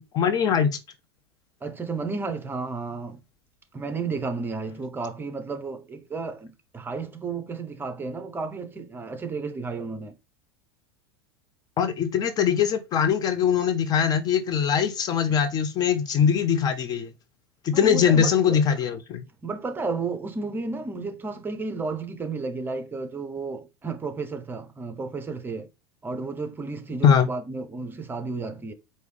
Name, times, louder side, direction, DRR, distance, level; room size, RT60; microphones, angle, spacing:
voice 1, 0.1-0.7 11.8-17.1 17.6-19.2 27.0-27.3, left 8 dB, 30° left, 0.5 m, -22 dB
voice 2, 1.6-3.2 3.7-10.2 17.7-18.6 19.4-25.7 26.0-28.7, right 4 dB, 15° right, 0.7 m, -32 dB
4.7 x 2.7 x 3.2 m
figure-of-eight pair, 80°, 13 cm